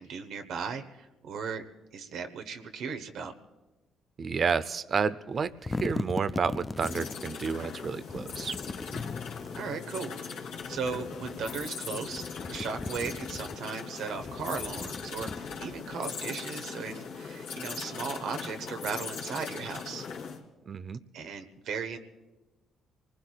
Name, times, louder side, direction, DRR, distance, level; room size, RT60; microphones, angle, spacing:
voice 1, 0.0-1.6 1.9-3.3 9.6-20.1 21.1-22.0, right 5 dB, 75° right, 6 dB, 1.2 m, -37 dB
voice 2, 4.2-8.6 20.7-21.0, right 5 dB, 50° right, 15 dB, 0.6 m, -30 dB
sound 1, 5.3-7.3 8.1-9.7 10.6-11.7 12.1-13.6 14.1-15.9, left 3 dB, 25° left, 0.4 m, -38 dB
sound 2, 6.8-20.4, left 6 dB, 85° left, 2.6 m, -40 dB
Bowed string instrument, 8.9-12.0, left 6 dB, 65° left, 1.3 m, -46 dB
26.0 x 20.5 x 2.4 m, 1.1 s
supercardioid pair, 60°, 0 cm